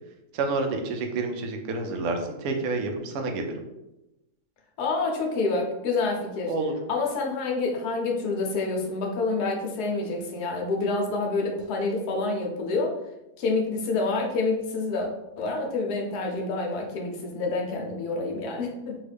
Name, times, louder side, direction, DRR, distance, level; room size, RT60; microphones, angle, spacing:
voice 1, 0.3-3.5 6.5-6.8, right 3 dB, 70° right, 4 dB, 1.0 m, -29 dB
voice 2, 4.8-6.5 6.9-13.0 13.4-15.1 15.4-19.0, left 3 dB, 75° left, 0 dB, 1.2 m, -27 dB
3.5 x 2.4 x 3.3 m, 0.93 s
omnidirectional pair, 1.7 m